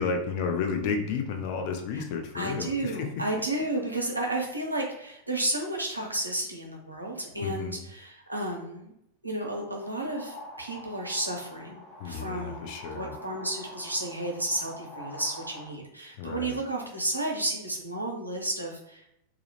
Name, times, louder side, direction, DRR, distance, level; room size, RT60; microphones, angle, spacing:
voice 1, 0.0-3.2 7.4-7.8 12.0-13.2 16.2-16.6, left 5 dB, 45° left, 4 dB, 0.4 m, -32 dB
voice 2, 2.3-8.9 9.2-19.1, right 1 dB, 85° right, 0 dB, 0.5 m, -32 dB
sound 1, 9.8-15.7, equal, 20° left, 1.0 m, -45 dB
2.3 x 2.0 x 2.9 m, 0.78 s
figure-of-eight pair, 90°, 0 cm